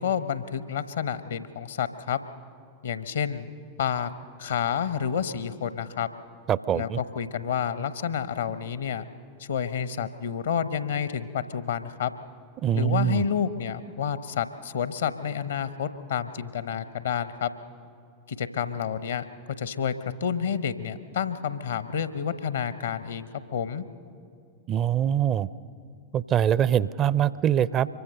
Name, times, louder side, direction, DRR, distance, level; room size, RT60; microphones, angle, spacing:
voice 1, 0.0-2.2 2.8-3.5 3.8-4.1 4.4-6.1 6.7-9.0 9.4-12.1 12.7-17.5 18.3-19.2 19.6-19.9 20.2-23.8, left 8 dB, 65° left, 13 dB, 0.9 m, -29 dB
voice 2, 6.5-7.0 12.6-13.2 24.7-25.5 26.1-27.9, right 10 dB, 30° right, 19 dB, 0.5 m, -23 dB
24.5 x 22.5 x 6.6 m, 2.3 s
figure-of-eight pair, 90°, 0 cm